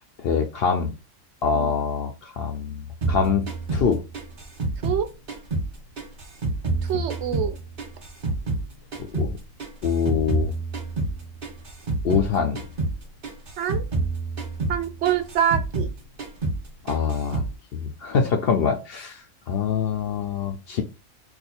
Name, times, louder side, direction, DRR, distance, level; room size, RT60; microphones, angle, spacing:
voice 1, 0.2-0.9 1.4-3.5 3.7-4.0 6.9-7.0 9.1-9.3 9.8-10.5 12.0-12.6 16.8-17.4 17.7-20.8, left 6 dB, 65° left, 0.6 m, -24 dB
sound 1, 3.0-5.7 6.0-8.7 8.9-12.3 12.5-13.0 13.2-15.9 16.2-16.6 16.9-17.5, right 3 dB, 40° right, 1.0 m, -28 dB
voice 2, 6.8-7.6 13.6-13.8 14.7-15.9, right 9 dB, 65° right, 0.8 m, -25 dB
2.5 x 2.4 x 4.1 m
omnidirectional pair, 1.4 m